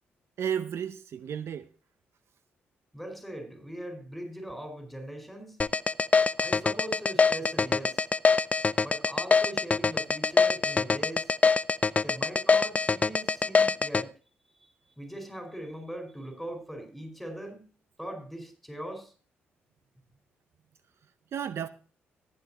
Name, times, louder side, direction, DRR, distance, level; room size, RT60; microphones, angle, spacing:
voice 1, 0.4-1.7 21.3-21.7, right 8 dB, 65° right, 0.6 m, -32 dB
voice 2, 2.9-5.6 6.4-8.1 8.8-11.3 12.0-14.1 14.6-17.7 18.0-19.1, right 1 dB, ahead, 4.9 m, -41 dB
sound 1, 5.6-14.0, left 4 dB, 30° left, 0.4 m, -23 dB
15.0 x 10.0 x 2.9 m
supercardioid pair, 60°, 5 cm